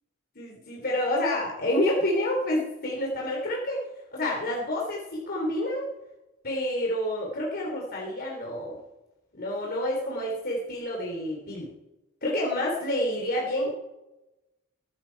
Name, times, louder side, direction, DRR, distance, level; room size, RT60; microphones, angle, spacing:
voice 1, 0.4-5.9 6.4-8.8 9.3-11.7 12.2-13.7, left 1 dB, 45° left, -3 dB, 3.4 m, -28 dB
22.5 x 12.0 x 4.7 m, 0.97 s
head